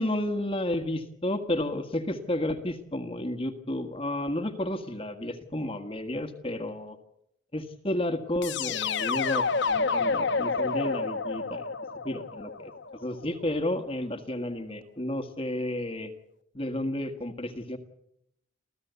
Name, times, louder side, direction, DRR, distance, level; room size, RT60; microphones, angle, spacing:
voice 1, 0.0-7.0 7.5-11.7 12.0-16.1 16.5-17.8, left 1 dB, 30° left, 7 dB, 1.6 m, -32 dB
sound 1, 8.4-13.3, left 4 dB, 60° left, 1.0 m, -29 dB
27.5 x 15.0 x 8.2 m, 0.76 s
head